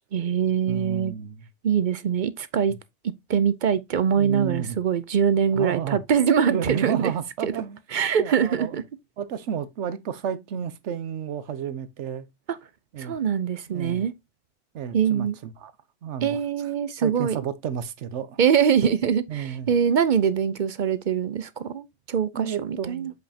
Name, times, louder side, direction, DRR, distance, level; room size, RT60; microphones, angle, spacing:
voice 1, 0.1-1.1 1.6-2.7 3.0-7.1 7.4-7.5 7.9-8.8 13.0-14.1 14.9-15.4 16.2-17.4 18.4-23.1, right 7 dB, 55° right, 0.6 m, -23 dB
voice 2, 0.6-1.5 2.7-2.8 4.1-4.8 5.5-6.0 6.5-7.8 8.2-8.8 9.2-12.3 12.9-13.2 13.7-14.1 14.7-15.7 16.0-16.4 17.0-18.4 19.3-19.7 22.3-23.1, right 8 dB, 75° right, 1.1 m, -32 dB
7.9 x 5.2 x 2.8 m
omnidirectional pair, 1.2 m